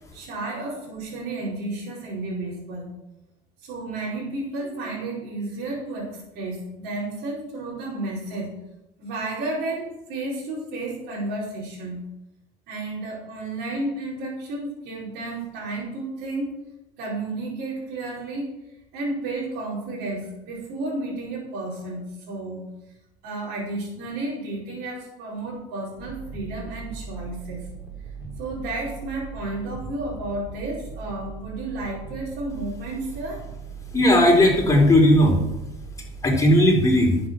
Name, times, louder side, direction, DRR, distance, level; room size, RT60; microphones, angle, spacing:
voice 1, 0.1-2.9 3.6-8.5 9.0-12.0 12.7-16.5 17.0-18.5 18.9-22.6 23.2-27.7 28.4-33.5, right 2 dB, 65° right, -8 dB, 5.0 m, -32 dB
sound 1, 26.0-36.3, right 5 dB, 10° right, 5.2 m, -39 dB
voice 2, 33.9-35.4 36.0-37.2, left 1 dB, 15° left, 0 dB, 4.4 m, -17 dB
11.0 x 8.0 x 6.2 m, 0.93 s
supercardioid pair, 95°, 19 cm